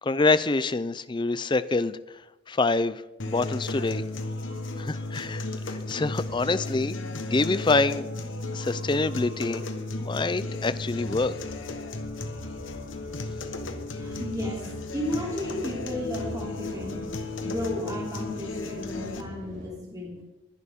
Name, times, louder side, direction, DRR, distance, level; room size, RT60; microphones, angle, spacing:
voice 1, 0.0-2.0 2.5-4.0 4.8-8.1 8.5-9.6 10.0-11.3, left 3 dB, 25° left, 15 dB, 0.5 m, -26 dB
sound 1, 3.2-19.2, left 2 dB, 75° left, 1.3 m, -34 dB
sound 2, 4.5-19.7, right 1 dB, 80° right, 4.4 m, -45 dB
voice 2, 14.0-17.1 17.4-20.2, left 1 dB, 20° right, -3 dB, 3.1 m, -34 dB
20.5 x 11.0 x 3.7 m, 0.95 s
head